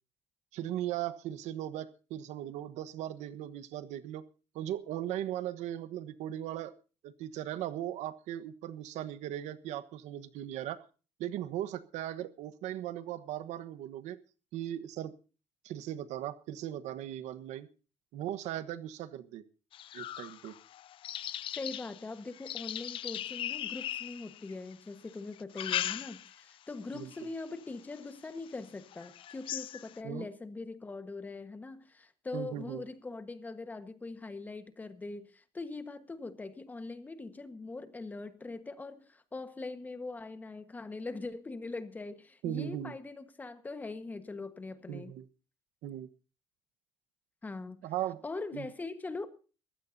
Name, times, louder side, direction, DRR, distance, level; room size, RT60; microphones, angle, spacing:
voice 1, 0.5-4.2 4.5-6.7 7.0-10.8 11.2-14.2 14.5-15.1 15.6-17.7 18.1-19.4 19.9-20.6 26.9-27.1 30.0-30.2 32.3-32.8 42.4-42.9 44.9-45.2 45.8-46.1 47.8-48.2 48.5-48.7, right 12 dB, 80° right, 14 dB, 1.2 m, -38 dB
sound 1, 19.7-24.7 25.3-26.5 26.9-27.3 27.9-28.0 28.5-28.6 28.9-30.0, left 12 dB, 50° left, 0.6 m, -39 dB
voice 2, 21.6-45.1 47.4-47.8 48.2-49.3, left 3 dB, 15° left, 10 dB, 1.3 m, -42 dB
22.5 x 15.5 x 2.7 m, 0.35 s
cardioid pair, 170°, 12 cm